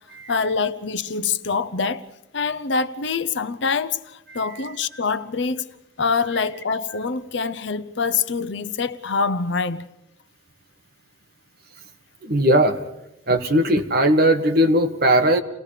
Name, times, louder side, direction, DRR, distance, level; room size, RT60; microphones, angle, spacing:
voice 1, 0.3-2.1 2.3-5.6 6.0-9.9, left 5 dB, 65° left, 0.8 m, -25 dB
voice 2, 12.2-12.8 13.3-15.4, right 1 dB, 50° right, 1.6 m, -18 dB
29.5 x 18.0 x 5.0 m
head